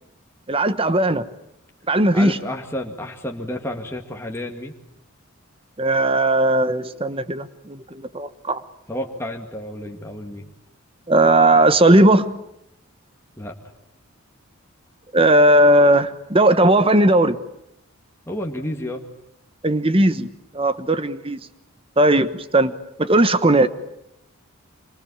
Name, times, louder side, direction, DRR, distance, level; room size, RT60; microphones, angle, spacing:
voice 1, 0.5-1.3 1.9-2.4 5.8-8.6 11.1-12.4 15.1-17.4 19.6-20.3 20.5-21.4 22.0-22.7 23.0-23.7, right 1 dB, 25° right, 12 dB, 1.1 m, -17 dB
voice 2, 2.1-4.7 8.9-10.5 13.4-13.5 18.3-19.0, left 1 dB, 10° left, 1 dB, 2.2 m, -31 dB
26.5 x 24.5 x 8.8 m, 0.80 s
head